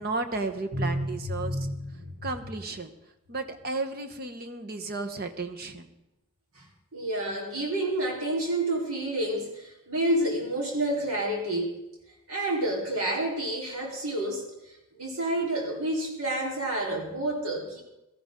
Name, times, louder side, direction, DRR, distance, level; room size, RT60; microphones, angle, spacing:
voice 1, 0.0-1.5 2.2-2.9 3.3-5.9, right 3 dB, 45° right, 7 dB, 1.1 m, -33 dB
voice 2, 0.7-2.1 6.5-6.6 6.9-11.7 12.3-14.5 15.0-17.8, right 1 dB, 80° right, -2 dB, 4.0 m, -29 dB
18.0 x 13.5 x 3.8 m, 0.89 s
head